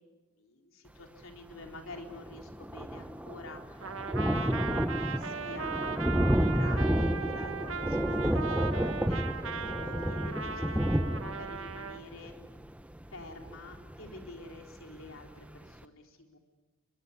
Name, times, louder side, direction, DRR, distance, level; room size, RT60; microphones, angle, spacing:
voice 1, 0.4-12.3 13.1-16.4, left 2 dB, 80° left, 3 dB, 3.9 m, -48 dB
Thunder, 1.6-1.7 2.0-14.6 15.1-15.2 15.5-15.6, equal, 5° right, 0.8 m, -31 dB
Trumpet, 3.8-12.0, right 5 dB, 75° right, 1.5 m, -38 dB
24.0 x 21.5 x 9.7 m, 1.2 s
head